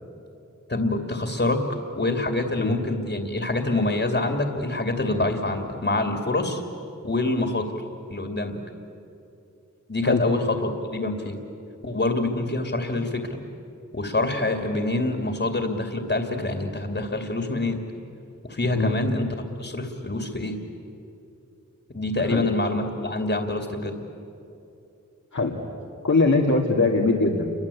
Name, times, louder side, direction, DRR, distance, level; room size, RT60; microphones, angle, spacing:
voice 1, 0.7-1.6 2.0-6.6 7.0-7.7 8.1-8.6 9.9-11.4 11.8-13.4 13.9-17.8 18.4-19.3 19.6-20.5 21.9-24.0, left 2 dB, 40° left, 4 dB, 2.7 m, -26 dB
voice 2, 26.0-27.5, left 3 dB, 70° left, -2 dB, 2.5 m, -21 dB
29.0 x 23.5 x 8.5 m, 2.7 s
wide cardioid pair, 50°, 30 cm